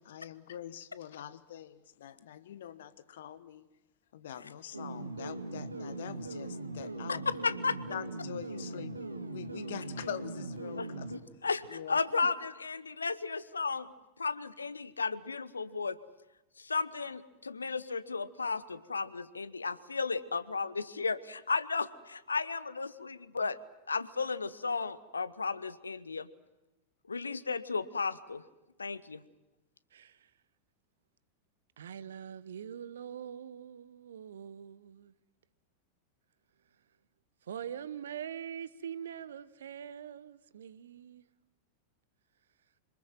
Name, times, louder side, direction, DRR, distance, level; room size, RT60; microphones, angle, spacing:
voice 1, 0.0-3.6 4.1-7.2 7.9-11.0 11.7-12.3, left 10 dB, 60° left, 1.2 m, -44 dB
sound 1, 4.7-11.2, right 2 dB, 80° right, 1.9 m, -40 dB
voice 2, 7.4-7.8 10.8-13.9 14.2-16.0 16.6-23.6 23.9-26.3 27.1-28.4 28.8-29.2, left 4 dB, 75° left, 1.0 m, -34 dB
voice 3, 29.9-30.3 31.8-35.1 37.4-41.2, right 9 dB, 65° right, 1.0 m, -43 dB
27.0 x 20.0 x 7.6 m
figure-of-eight pair, 90°, 0 cm